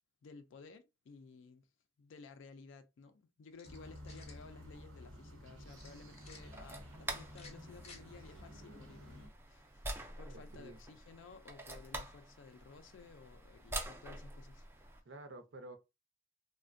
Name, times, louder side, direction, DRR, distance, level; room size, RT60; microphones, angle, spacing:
voice 1, 0.2-1.7 2.0-9.9 10.2-14.7, left 4 dB, 65° left, 0.3 m, -56 dB
sound 1, 3.5-4.4 5.8-6.4 7.3-8.0, left 4 dB, 30° left, 0.7 m, -56 dB
sound 2, 3.6-9.3, left 1 dB, 80° right, 1.0 m, -52 dB
sound 3, 5.7-15.0, right 2 dB, 10° right, 0.3 m, -47 dB
voice 2, 10.3-10.8 15.1-15.8, right 2 dB, 60° right, 0.6 m, -50 dB
3.3 x 2.1 x 2.5 m
head